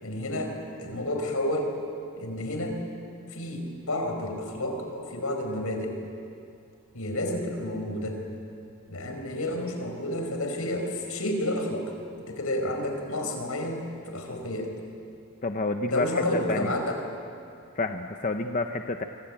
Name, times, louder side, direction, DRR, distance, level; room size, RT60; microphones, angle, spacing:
voice 1, 0.0-1.7 2.2-2.8 3.3-6.0 6.9-8.2 8.9-11.9 12.3-14.7 15.9-17.0, left 1 dB, 75° left, 4 dB, 4.9 m, -30 dB
voice 2, 15.4-16.2 16.5-16.8 17.7-19.0, left 3 dB, 35° left, 6 dB, 0.8 m, -29 dB
25.5 x 24.0 x 8.8 m, 2.5 s
head